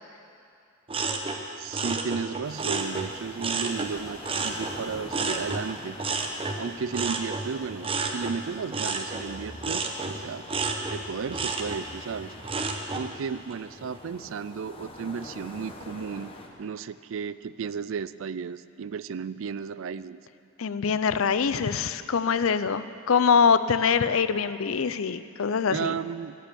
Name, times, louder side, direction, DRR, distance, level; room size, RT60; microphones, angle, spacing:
sound 1, 0.9-3.9 4.2-13.1 13.5-14.0, right 3 dB, 25° right, 0.9 m, -31 dB
voice 1, 1.6-6.0 6.6-10.4 10.9-12.3 12.9-16.3 16.6-20.2 25.7-26.4, right 6 dB, 65° right, 15 dB, 0.4 m, -34 dB
sound 2, 2.4-16.5, left 1 dB, 25° left, 1.3 m, -46 dB
voice 2, 20.6-26.0, left 6 dB, 75° left, 13 dB, 0.5 m, -24 dB
17.0 x 9.9 x 6.9 m, 2.5 s
head